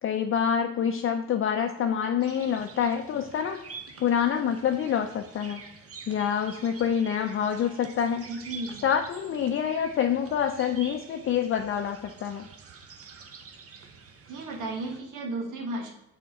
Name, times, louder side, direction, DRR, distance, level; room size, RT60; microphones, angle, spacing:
voice 1, 0.0-3.6 4.0-5.6 6.1-8.3 8.8-12.5, left 8 dB, 45° left, 5 dB, 0.5 m, -27 dB
sound 1, 2.2-15.0, right 5 dB, 50° right, 0.9 m, -47 dB
voice 2, 8.3-8.8 14.3-15.9, right 2 dB, 85° right, 2 dB, 1.3 m, -34 dB
6.7 x 4.3 x 3.7 m, 0.88 s
cardioid pair, 90°, 30 cm